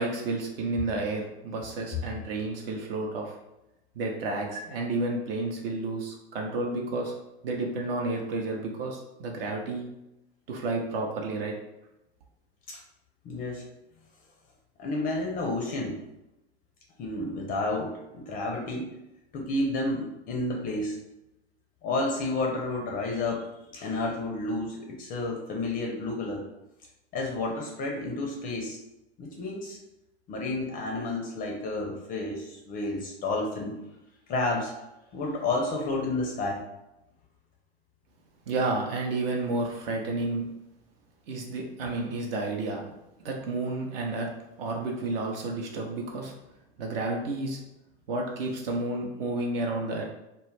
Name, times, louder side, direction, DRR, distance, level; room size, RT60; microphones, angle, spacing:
voice 1, 0.0-3.4 4.0-7.1 7.4-9.9 10.5-11.5 38.5-40.5 41.3-42.8 43.2-44.3 44.6-46.3 46.8-47.6 48.1-50.0, right 2 dB, 60° right, 0 dB, 0.6 m, -31 dB
voice 2, 13.2-13.6 14.8-15.9 17.0-18.9 19.3-21.0 21.8-23.4 23.7-26.4 27.1-28.8 29.2-29.8 30.3-33.8 34.3-34.7 35.1-36.6, left 2 dB, 25° left, 0 dB, 0.4 m, -30 dB
2.2 x 2.0 x 3.2 m, 0.92 s
hypercardioid pair, 95°, 33 cm